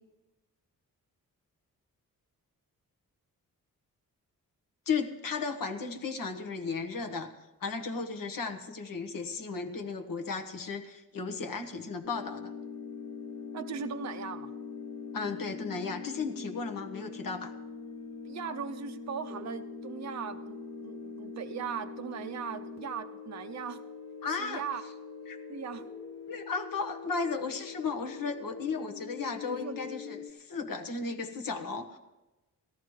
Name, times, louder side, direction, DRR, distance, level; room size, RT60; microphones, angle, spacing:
voice 1, 4.9-7.3 7.6-12.5 15.1-17.5 24.2-24.6 25.3-25.4 26.3-32.0, left 4 dB, 70° left, 5 dB, 1.2 m, -35 dB
sound 1, 12.0-30.3, left 5 dB, 50° left, 1.2 m, -43 dB
voice 2, 13.5-14.5 18.2-23.8 24.3-24.8 25.5-25.8 29.5-29.7, right 7 dB, 50° right, 8 dB, 0.6 m, -39 dB
17.5 x 14.0 x 3.2 m, 1.1 s
cardioid pair, 80°, 35 cm